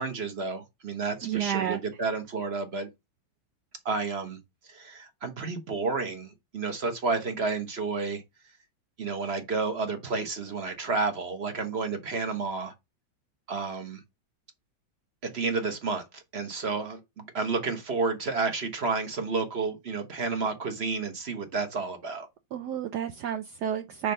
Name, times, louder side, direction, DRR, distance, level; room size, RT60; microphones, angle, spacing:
voice 1, 0.0-2.9 3.8-4.4 4.7-8.2 9.0-12.7 13.5-14.0 15.2-22.3, right 4 dB, 40° right, 1.0 m, -31 dB
voice 2, 1.2-1.8 22.5-24.1, right 9 dB, 70° right, 1.0 m, -30 dB
6.5 x 3.1 x 5.3 m
omnidirectional pair, 2.2 m